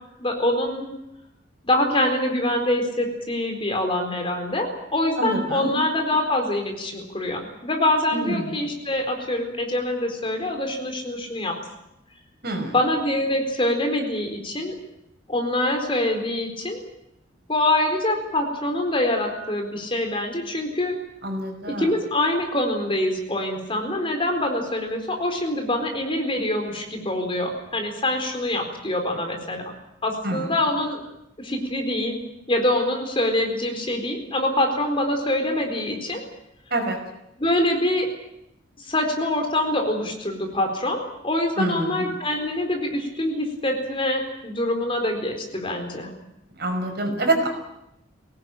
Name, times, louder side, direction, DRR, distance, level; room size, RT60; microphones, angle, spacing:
voice 1, 0.2-0.9 1.6-11.6 12.7-14.7 15.3-16.8 17.5-20.9 21.7-29.6 30.0-31.0 31.4-32.2 32.5-36.2 37.4-38.1 38.8-46.1, left 1 dB, 30° left, 4 dB, 4.2 m, -25 dB
voice 2, 5.2-5.7 8.1-8.6 12.4-12.7 21.2-21.9 30.2-30.5 36.7-37.0 41.6-42.0 46.6-47.5, right 2 dB, 55° right, 4 dB, 5.6 m, -26 dB
23.0 x 18.5 x 9.0 m, 0.83 s
head